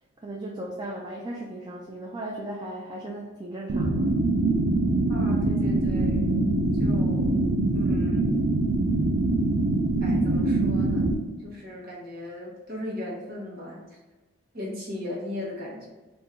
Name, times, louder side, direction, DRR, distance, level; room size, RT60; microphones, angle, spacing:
voice 1, 0.2-4.1, right 1 dB, 20° right, -2 dB, 0.3 m, -36 dB
sound 1, 3.7-11.1, right 2 dB, 75° right, 0.5 m, -23 dB
voice 2, 5.1-6.3 6.7-7.3 7.7-8.4 10.0-14.0 14.5-15.9, left 1 dB, 45° right, -4 dB, 1.2 m, -37 dB
3.7 x 2.6 x 4.3 m, 1.2 s
head